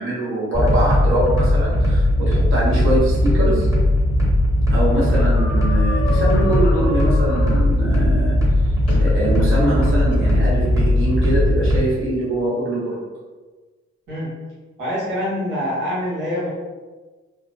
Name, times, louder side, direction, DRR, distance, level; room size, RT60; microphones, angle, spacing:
voice 1, 0.0-3.7 4.7-8.4 9.0-13.0, right 1 dB, 45° right, -7 dB, 1.1 m, -23 dB
sound 1, 0.5-11.8, left 1 dB, 10° right, 1.1 m, -18 dB
sound 2, 5.1-7.7 8.9-9.5 10.1-10.3, left 3 dB, 55° left, 0.5 m, -30 dB
voice 2, 14.8-16.5, equal, 85° right, -8 dB, 1.3 m, -25 dB
2.6 x 2.1 x 2.6 m, 1.3 s
supercardioid pair, 45°, 30 cm